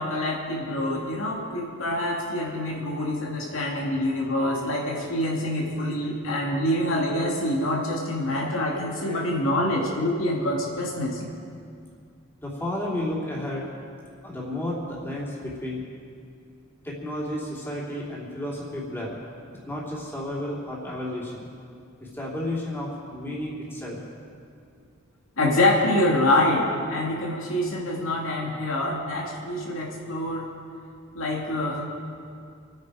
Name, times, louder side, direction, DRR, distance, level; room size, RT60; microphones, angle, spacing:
voice 1, 0.0-11.2 25.4-30.5 31.1-31.9, left 1 dB, 80° left, -2 dB, 2.6 m, -26 dB
voice 2, 4.4-4.8 12.4-13.6 14.2-15.8 16.8-19.2 19.6-21.5 22.0-24.0, left 1 dB, 10° left, -5 dB, 3.3 m, -32 dB
27.5 x 9.4 x 5.1 m, 2.3 s
head